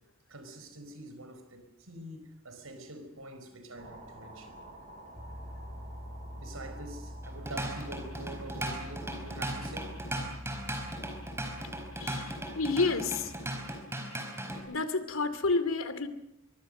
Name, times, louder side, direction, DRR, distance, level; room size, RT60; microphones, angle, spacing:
voice 1, 0.3-4.6 6.4-10.0, right 1 dB, 85° right, 5.1 m, -45 dB
sound 1, 3.7-12.4, right 1 dB, 35° right, 5.5 m, -53 dB
sound 2, 5.1-13.8, equal, 15° left, 2.6 m, -45 dB
Drum kit / Drum, 7.2-14.6, right 1 dB, 10° right, 4.6 m, -37 dB
voice 2, 12.0-13.3 14.7-16.1, left 3 dB, 75° left, 2.5 m, -30 dB
24.0 x 23.5 x 6.7 m
head